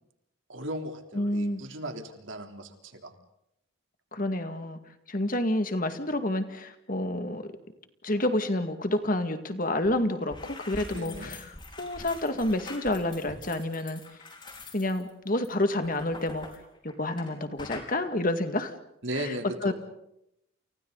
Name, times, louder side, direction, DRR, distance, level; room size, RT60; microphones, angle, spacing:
voice 1, 0.5-3.1 10.9-11.4 19.0-19.7, right 1 dB, 70° right, 4 dB, 3.6 m, -37 dB
voice 2, 1.1-1.6 4.1-4.8 5.1-7.4 8.0-14.0 14.7-16.5 16.8-18.7 19.2-19.4 19.6-19.7, left 1 dB, 40° left, 8 dB, 2.1 m, -29 dB
sound 1, 9.8-9.9 10.2-17.3 17.6-17.9, left 2 dB, 25° left, 4.6 m, -45 dB
30.0 x 29.5 x 4.1 m, 0.79 s
head